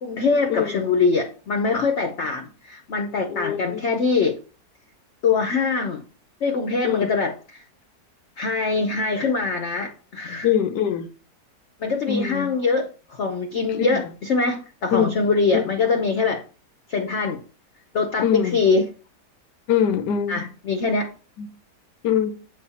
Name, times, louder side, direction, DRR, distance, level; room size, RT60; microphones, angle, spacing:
voice 1, 0.0-4.4 5.2-6.0 6.4-7.6 8.4-10.5 11.8-16.4 16.9-17.4 17.9-18.9 20.3-21.1, left 4 dB, 55° left, 0.8 m, -23 dB
voice 2, 3.3-3.8 6.8-7.1 10.4-11.1 12.1-12.5 13.7-14.0 14.9-15.1 15.5-15.7 18.2-18.6 19.7-20.5 21.4-21.5 22.0-22.3, left 8 dB, 90° left, 1.4 m, -23 dB
8.0 x 4.2 x 4.2 m
omnidirectional pair, 1.8 m